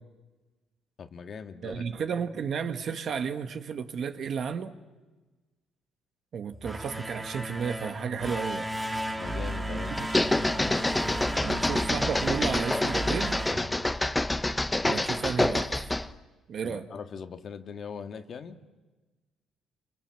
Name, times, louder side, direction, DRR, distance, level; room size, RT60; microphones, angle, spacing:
voice 1, 1.0-1.8 9.1-10.3 10.5-11.0 16.6-18.6, left 6 dB, 45° left, 1.8 m, -41 dB
voice 2, 1.6-4.8 6.3-8.7 9.7-10.1 11.4-13.4 14.8-15.9 16.5-16.9, right 6 dB, 50° right, 1.6 m, -33 dB
sound 1, 6.5-14.5, right 1 dB, 10° right, 1.7 m, -34 dB
sound 2, 10.0-16.1, left 1 dB, 10° left, 0.9 m, -27 dB
29.0 x 25.5 x 7.7 m
cardioid pair, 135°, 0 cm